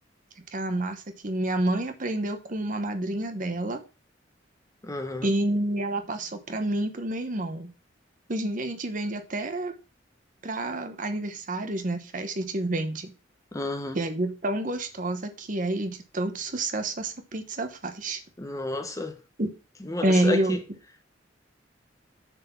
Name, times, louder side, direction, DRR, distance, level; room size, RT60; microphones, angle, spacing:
voice 1, 0.5-3.8 5.2-7.7 8.3-9.7 10.4-13.1 13.9-18.2 19.4-19.5 20.0-20.6, right 1 dB, 45° right, 1.0 m, -28 dB
voice 2, 4.8-5.3 13.5-14.0 18.4-19.2 19.9-20.6, left 2 dB, 15° left, 0.9 m, -31 dB
6.9 x 4.3 x 5.8 m
head